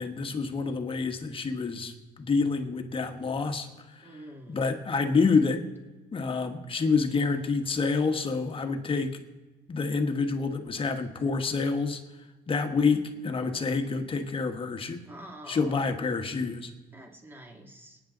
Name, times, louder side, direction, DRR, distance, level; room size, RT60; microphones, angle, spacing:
voice 1, 0.0-4.2 4.5-5.6 6.1-9.2 9.7-12.0 12.5-15.0 15.5-16.7, left 4 dB, 30° left, 6 dB, 1.4 m, -28 dB
voice 2, 4.0-4.6 15.1-15.9 16.9-18.0, right 1 dB, 10° right, 1 dB, 2.4 m, -47 dB
25.0 x 9.6 x 3.9 m, 1.2 s
cardioid pair, 120°, 17 cm